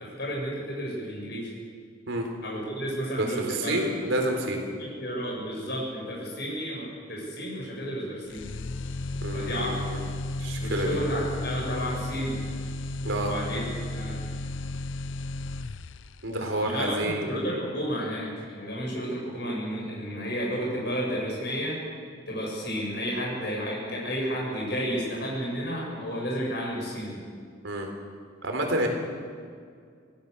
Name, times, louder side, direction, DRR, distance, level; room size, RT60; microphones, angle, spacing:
voice 1, 0.0-1.5 2.4-3.8 4.8-8.5 9.3-9.8 10.5-12.4 13.1-13.6 13.9-14.2 16.2-21.8 22.3-27.2, equal, 50° left, -3 dB, 7.9 m, -32 dB
voice 2, 3.2-4.6 9.2-10.0 10.4-11.0 13.0-13.3 16.2-17.3 27.6-27.9 28.4-28.9, right 1 dB, 65° right, 2 dB, 3.8 m, -29 dB
sound 1, 8.3-16.3, left 2 dB, 65° left, 0.6 m, -34 dB
26.0 x 17.5 x 6.9 m, 2.1 s
head